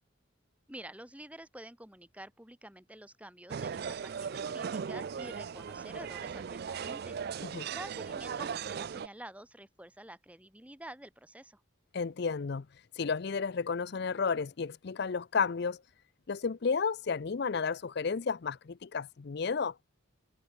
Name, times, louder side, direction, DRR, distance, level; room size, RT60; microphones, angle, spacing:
voice 1, 0.7-7.2 7.7-11.6, right 1 dB, 5° right, 2.5 m, -49 dB
sound 1, 3.5-9.1, right 6 dB, 45° right, 0.3 m, -38 dB
voice 2, 11.9-12.7 13.0-15.8 16.3-19.7, left 5 dB, 50° left, 0.5 m, -32 dB
head